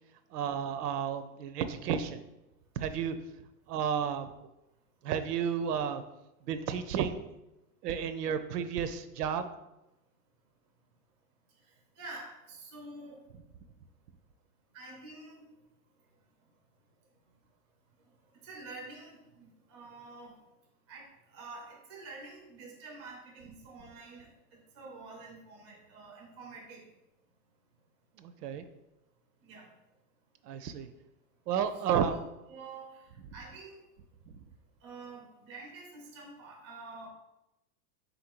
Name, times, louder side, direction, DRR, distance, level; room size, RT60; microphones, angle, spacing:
voice 1, 0.3-2.2 2.8-3.2 3.7-4.3 5.0-6.0 6.5-7.4 7.8-9.5 28.2-28.6 30.4-30.9 31.5-32.2, right 8 dB, 85° right, 10 dB, 0.6 m, -32 dB
voice 2, 12.0-13.3 14.7-15.5 18.4-20.4 20.9-26.9 29.4-29.7 32.1-32.2 32.5-33.0 33.3-33.8 34.8-37.1, right 3 dB, 20° right, -2 dB, 0.4 m, -48 dB
4.0 x 2.6 x 4.4 m, 0.93 s
supercardioid pair, 175°, 46 cm